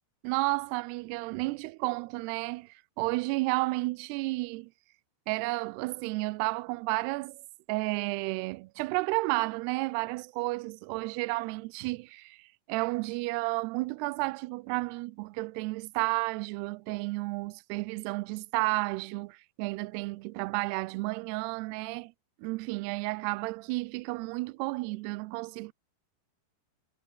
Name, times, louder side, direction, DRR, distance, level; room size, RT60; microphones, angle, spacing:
voice 1, 0.2-4.7 5.3-22.1 22.4-25.7, right 24 dB, 85° right, 2.6 m, -32 dB
omnidirectional pair, 4.9 m